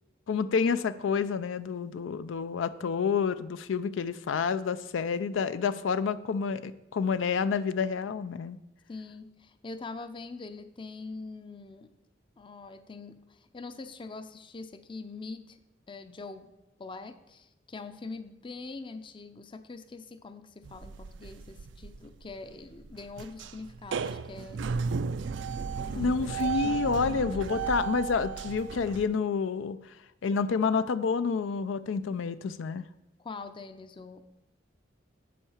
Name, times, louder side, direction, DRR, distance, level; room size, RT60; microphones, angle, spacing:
voice 1, 0.3-8.6 26.0-29.9 30.2-32.8, left 5 dB, 85° left, 14 dB, 0.4 m, -29 dB
voice 2, 8.9-11.9 12.4-15.6 15.9-16.5 16.8-24.6 25.7-27.6 33.2-34.2, left 3 dB, 25° left, 11 dB, 0.5 m, -43 dB
sound 1, 20.6-29.1, right 6 dB, 70° right, 0.4 m, -34 dB
8.4 x 4.6 x 7.1 m, 0.90 s
head